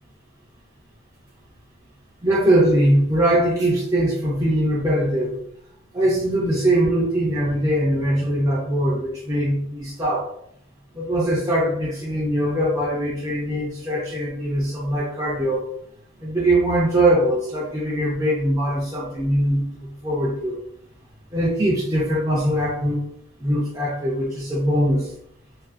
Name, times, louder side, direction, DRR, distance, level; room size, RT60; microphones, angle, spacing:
voice 1, 2.2-5.4 5.9-10.3 10.9-15.6 16.2-20.6 21.3-23.0 23.4-25.1, right 1 dB, 15° right, -6 dB, 0.4 m, -21 dB
2.4 x 2.4 x 2.4 m, 0.72 s
head